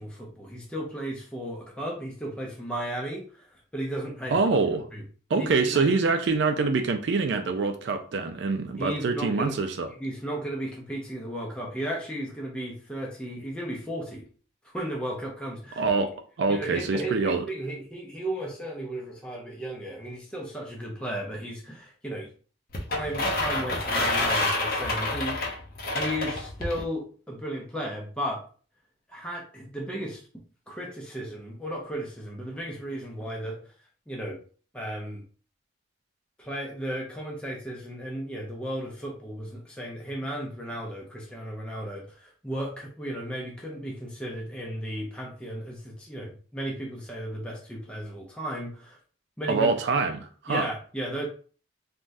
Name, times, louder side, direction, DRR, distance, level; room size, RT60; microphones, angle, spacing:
voice 1, 0.0-4.4 4.9-5.0 5.4-5.8 8.8-9.5 10.0-14.2 14.6-15.8 16.5-22.3 22.9-25.6 25.9-28.5 29.1-30.2 30.7-33.6 34.1-34.4 34.7-35.2 36.4-49.0 49.4-49.7 50.5-51.2, right 1 dB, 5° left, -2 dB, 0.5 m, -35 dB
voice 2, 4.3-4.9 5.3-9.9 15.8-17.4 49.5-50.7, right 4 dB, 65° right, 7 dB, 0.3 m, -25 dB
sound 1, 22.7-26.8, left 2 dB, 50° left, 0.7 m, -28 dB
3.3 x 2.2 x 2.5 m, 0.41 s
head